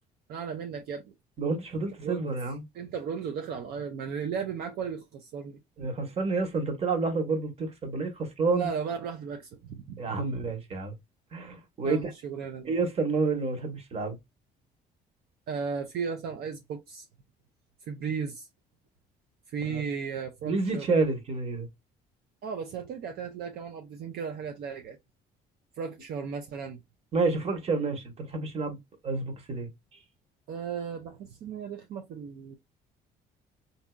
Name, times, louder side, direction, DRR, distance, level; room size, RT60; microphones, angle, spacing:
voice 1, 0.3-1.1 2.0-2.3 2.7-5.6 8.5-10.0 11.8-12.7 15.5-17.1 17.9-18.5 19.5-20.9 22.4-25.0 25.8-26.8 30.5-32.6, right 6 dB, 65° right, 0.6 m, -35 dB
voice 2, 1.4-2.6 5.8-8.7 10.0-10.9 11.3-12.1 12.6-14.2 19.7-19.8 20.4-21.7 27.1-30.0, right 3 dB, 35° right, 1.2 m, -29 dB
3.8 x 2.7 x 2.2 m
cardioid pair, 110°, 17 cm